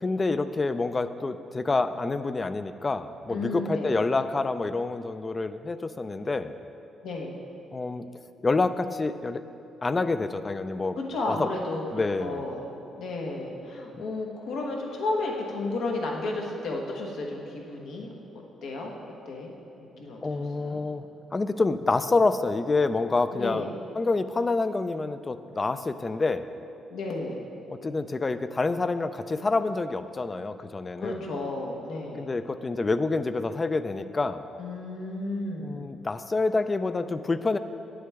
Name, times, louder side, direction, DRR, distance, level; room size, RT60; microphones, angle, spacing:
voice 1, 0.0-6.5 7.7-8.1 8.4-9.4 9.8-11.0 11.3-11.5 11.9-12.4 13.9-14.0 20.2-21.0 21.3-26.5 27.7-31.2 32.2-34.5 35.6-37.6, left 3 dB, 25° left, 12 dB, 0.3 m, -27 dB
voice 2, 3.3-4.0 7.0-7.3 11.0-12.7 13.0-18.9 19.3-19.5 19.8-20.9 23.3-23.7 26.9-27.4 31.0-32.3 34.6-35.8, left 2 dB, 75° left, 0 dB, 1.1 m, -33 dB
9.0 x 7.8 x 3.5 m, 3.0 s
cardioid pair, 90°, 0 cm